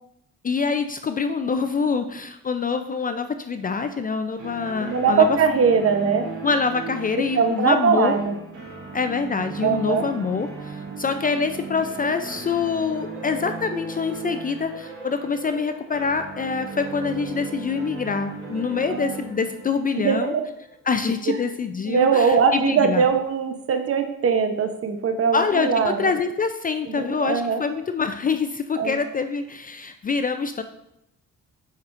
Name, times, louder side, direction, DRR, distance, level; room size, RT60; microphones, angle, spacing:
voice 1, 0.4-5.4 6.4-8.1 8.9-20.3 20.9-23.0 25.3-30.6, left 5 dB, 30° left, 8 dB, 0.4 m, -25 dB
sound 1, 4.4-21.1, right 4 dB, 80° right, 2.4 m, -37 dB
voice 2, 4.8-6.3 7.2-8.4 9.6-10.1 18.9-19.1 19.9-20.4 21.3-21.4 21.9-26.1 26.9-27.6 28.8-29.0, right 6 dB, 50° right, 6 dB, 0.9 m, -21 dB
7.2 x 5.5 x 2.5 m, 0.80 s
cardioid pair, 90°, 30 cm